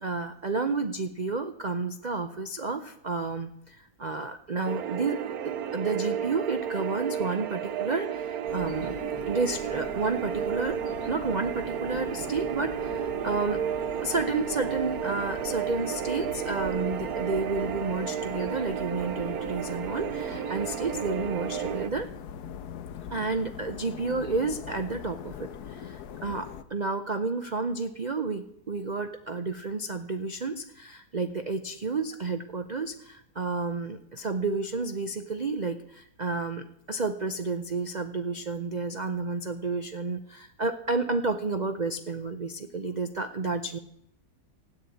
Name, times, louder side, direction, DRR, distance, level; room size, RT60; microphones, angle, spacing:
voice 1, 0.0-9.0 9.3-10.8 11.0-13.6 14.0-22.1 23.1-43.8, right 3 dB, 85° right, 8 dB, 0.3 m, -31 dB
sound 1, 4.6-21.9, right 9 dB, 65° right, 1.1 m, -32 dB
sound 2, 8.5-26.6, left 8 dB, 65° left, 1.2 m, -42 dB
14.5 x 8.8 x 8.5 m, 0.75 s
omnidirectional pair, 1.9 m